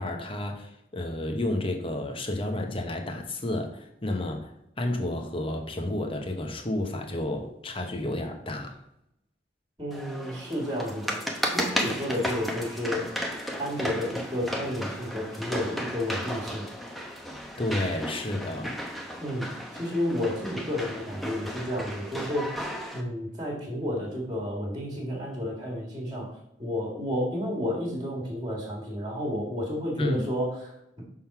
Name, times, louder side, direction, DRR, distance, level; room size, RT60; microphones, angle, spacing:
voice 1, 0.0-8.8 17.6-18.9 30.0-30.2, left 1 dB, 30° left, 4 dB, 1.0 m, -31 dB
voice 2, 9.8-11.2 11.5-13.1 13.6-16.7 19.2-22.7 22.9-31.0, left 1 dB, 25° right, -2 dB, 1.9 m, -31 dB
sound 1, 9.9-23.0, equal, ahead, 0.9 m, -34 dB
6.2 x 3.8 x 5.9 m, 0.79 s
head